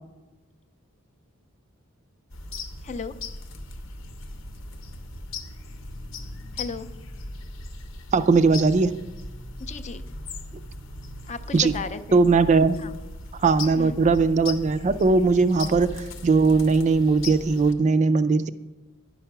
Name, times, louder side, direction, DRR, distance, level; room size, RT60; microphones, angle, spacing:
sound 1, 2.3-17.7, left 2 dB, 65° left, 0.8 m, -38 dB
voice 1, 6.6-6.9 9.6-10.0 11.3-12.2 12.8-12.9 13.8-14.0, left 5 dB, 35° left, 11 dB, 0.5 m, -34 dB
voice 2, 8.1-8.9 11.5-11.7 12.1-12.8 13.4-18.5, right 4 dB, 35° right, 11 dB, 0.3 m, -19 dB
10.5 x 5.6 x 5.9 m, 1.1 s
head